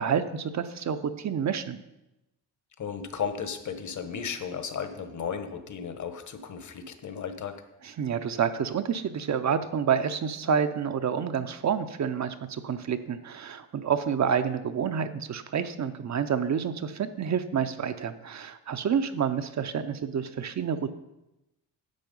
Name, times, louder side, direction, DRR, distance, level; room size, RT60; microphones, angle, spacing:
voice 1, 0.0-1.8 7.8-20.8, right 7 dB, 45° right, 9 dB, 0.7 m, -28 dB
voice 2, 2.8-7.5, left 6 dB, 45° left, 9 dB, 1.2 m, -35 dB
10.5 x 7.2 x 5.4 m, 0.93 s
cardioid pair, 100°, 40 cm